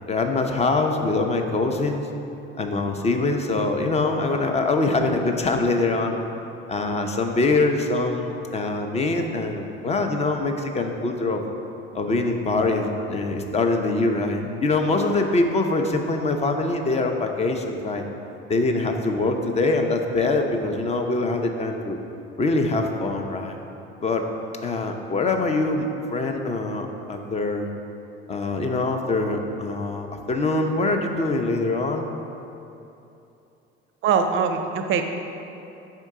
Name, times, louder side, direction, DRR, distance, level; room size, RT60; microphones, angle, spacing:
voice 1, 0.1-2.1 2.6-6.2 6.7-11.4 11.9-18.0 18.5-22.0 22.4-23.5 24.0-24.2 24.6-27.7 28.3-32.1, left 3 dB, 20° left, 4 dB, 0.5 m, -24 dB
voice 2, 34.0-35.0, right 6 dB, 40° right, 6 dB, 0.6 m, -22 dB
6.5 x 4.4 x 3.6 m, 2.8 s
figure-of-eight pair, 60°, 33 cm